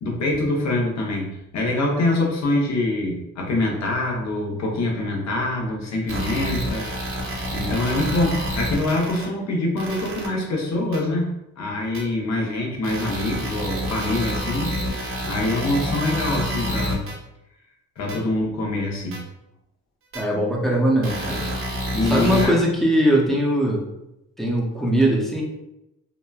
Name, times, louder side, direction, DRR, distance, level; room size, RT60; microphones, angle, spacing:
voice 1, 0.0-6.9 7.5-17.1 18.0-19.2 21.9-22.6, left 2 dB, 60° left, 0 dB, 0.8 m, -24 dB
sound 1, 6.1-9.2 9.8-10.3 10.9-11.0 11.9-12.0 12.8-17.1 18.1-18.2 19.1-19.2 20.1-20.2 21.0-22.5, equal, 45° right, 0.7 m, -28 dB
voice 2, 20.1-21.5 22.0-23.9 24.4-25.4, right 1 dB, ahead, -2 dB, 0.6 m, -20 dB
2.9 x 2.2 x 2.3 m, 0.88 s
cardioid pair, 90°, 30 cm